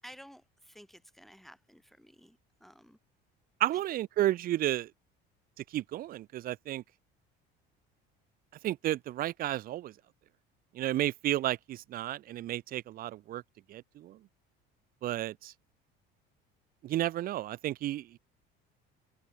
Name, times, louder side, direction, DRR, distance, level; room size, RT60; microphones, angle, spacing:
voice 1, 0.0-3.0 3.7-3.8, equal, ahead, 4.3 m, -54 dB
voice 2, 3.6-4.9 5.7-6.8 8.6-9.9 10.7-13.4 13.7-14.2 15.0-15.5 16.8-18.2, right 14 dB, 45° right, 0.6 m, -32 dB
cardioid pair, 145°, 21 cm